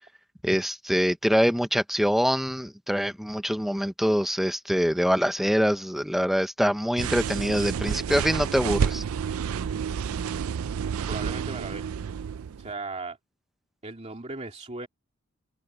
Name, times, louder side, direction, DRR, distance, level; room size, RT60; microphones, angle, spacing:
voice 1, 0.4-9.0, equal, ahead, 0.8 m, -24 dB
sound 1, 7.0-12.7, right 7 dB, 85° right, 0.4 m, -30 dB
voice 2, 11.1-11.9 12.6-13.2 13.8-14.9, right 3 dB, 30° right, 2.5 m, -37 dB
head